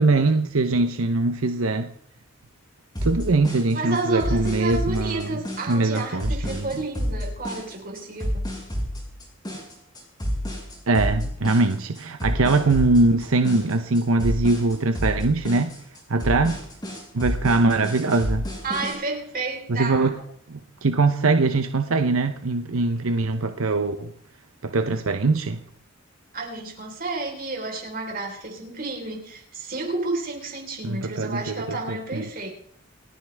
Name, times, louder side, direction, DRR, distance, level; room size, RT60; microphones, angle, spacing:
voice 1, 0.0-1.9 3.0-5.3 5.7-6.7 10.9-15.7 16.1-16.6 17.1-18.4 19.7-20.2 20.5-24.1 24.6-25.6 30.8-32.2, right 3 dB, 80° right, 0.9 m, -22 dB
sound 1, 2.9-18.9, equal, 20° left, 5.7 m, -30 dB
voice 2, 3.7-8.5 18.6-20.1 26.3-32.5, right 3 dB, 40° right, 4.1 m, -31 dB
28.0 x 9.9 x 3.5 m
head